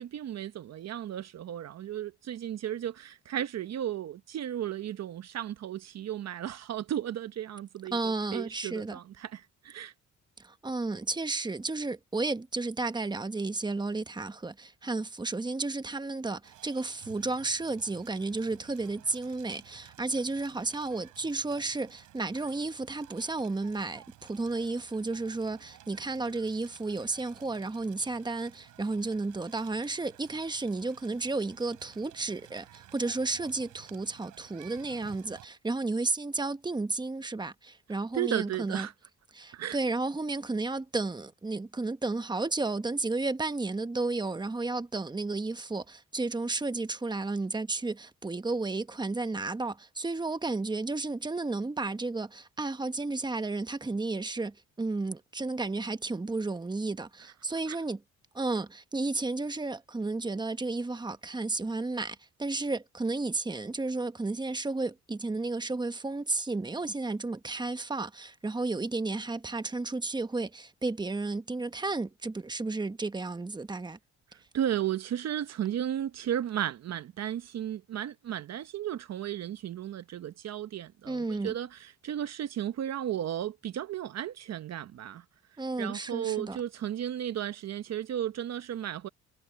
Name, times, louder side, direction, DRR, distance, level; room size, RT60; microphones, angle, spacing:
voice 1, 0.0-9.9 38.1-38.9 39.5-39.8 57.7-57.8 74.3-85.2 85.8-89.1, right 11 dB, 60° right, 0.9 m, -34 dB
voice 2, 7.9-9.0 10.4-38.9 39.3-58.0 58.3-74.0 81.0-81.5 85.6-86.6, right 3 dB, 15° right, 1.2 m, -32 dB
Crackle, 16.4-35.4, right 13 dB, 85° right, 4.6 m, -54 dB
cardioid pair, 90°, 30 cm